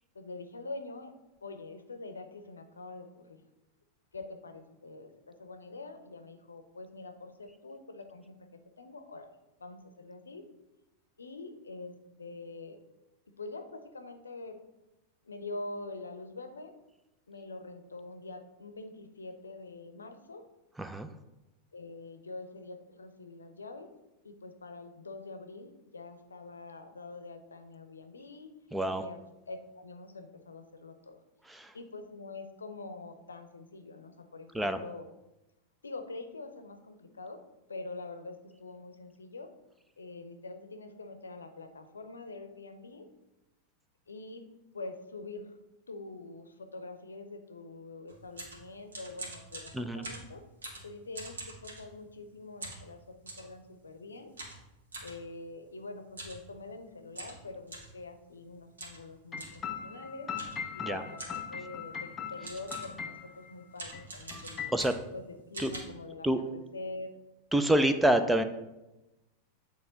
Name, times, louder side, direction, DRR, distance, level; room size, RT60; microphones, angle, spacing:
voice 1, 0.1-1.1 1.4-3.4 4.1-8.4 8.8-9.3 9.6-10.4 11.2-12.8 13.4-14.6 15.2-16.7 17.3-20.4 21.7-23.9 24.2-28.5 28.9-31.2 31.7-35.1 35.8-37.4 37.7-39.5 40.0-43.1 44.1-44.5 44.7-45.6 45.9-50.4 50.8-54.3 55.0-60.3 60.7-64.7 65.1-67.1, left 3 dB, 75° left, 7 dB, 0.7 m, -45 dB
voice 2, 20.8-21.1 28.7-29.0 31.5-31.7 34.5-34.8 49.7-50.0 60.8-61.0 64.7-64.9 65.6-65.7 66.2-66.4 67.5-68.4, right 1 dB, 5° right, 9 dB, 0.4 m, -27 dB
sound 1, 48.1-52.2 52.6-53.5 54.4-55.2 56.1-56.4 56.7-56.8 57.1-58.0 58.8-59.0 59.4-59.6 60.4-60.7 61.2-61.5 62.1-62.2 62.4-63.0 63.7-65.2 65.5-65.8, right 2 dB, 70° right, 1.8 m, -44 dB
sound 2, 59.3-63.5 63.9-64.0 64.3-64.8, left 7 dB, 20° left, 0.7 m, -40 dB
8.8 x 3.4 x 3.9 m, 0.98 s
figure-of-eight pair, 90°, 0 cm